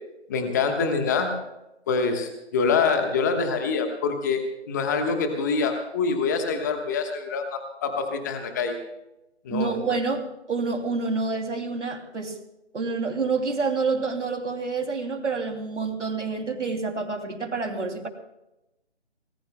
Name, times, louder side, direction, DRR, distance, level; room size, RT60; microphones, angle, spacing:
voice 1, 0.3-1.3 1.9-8.8 9.4-9.7, left 5 dB, 15° left, 5 dB, 1.2 m, -25 dB
voice 2, 9.5-12.4 12.7-18.1, right 4 dB, 85° right, 5 dB, 2.9 m, -28 dB
26.0 x 19.5 x 2.2 m, 0.91 s
figure-of-eight pair, 160°, 35 cm